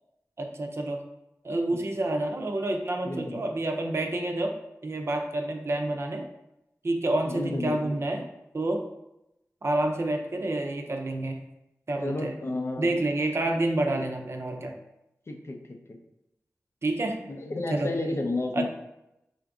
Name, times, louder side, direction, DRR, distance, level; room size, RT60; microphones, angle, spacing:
voice 1, 0.4-1.0 1.4-4.6 4.8-6.3 6.8-8.3 8.5-8.8 9.6-11.4 11.9-12.3 12.8-14.7 16.8-17.2 17.7-17.9 18.5-18.7, right 2 dB, 50° right, 3 dB, 0.5 m, -28 dB
voice 2, 3.0-3.4 7.2-8.0 12.0-12.9 14.0-14.1 15.3-16.0 17.3-18.7, left 2 dB, 50° left, 3 dB, 0.5 m, -32 dB
3.7 x 2.5 x 3.5 m, 0.88 s
wide cardioid pair, 70°, 6 cm